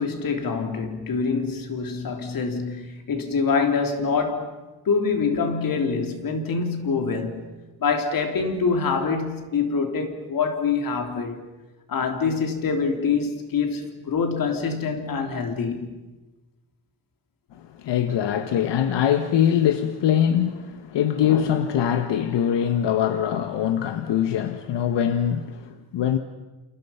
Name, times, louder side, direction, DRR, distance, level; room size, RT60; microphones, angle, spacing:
voice 1, 0.0-4.5 4.9-7.4 7.8-11.4 11.9-15.9, left 5 dB, 55° left, 3.5 m, -25 dB
voice 2, 17.5-26.2, left 9 dB, 85° left, 1.4 m, -23 dB
29.0 x 28.5 x 5.8 m
cardioid pair, 150°, 41 cm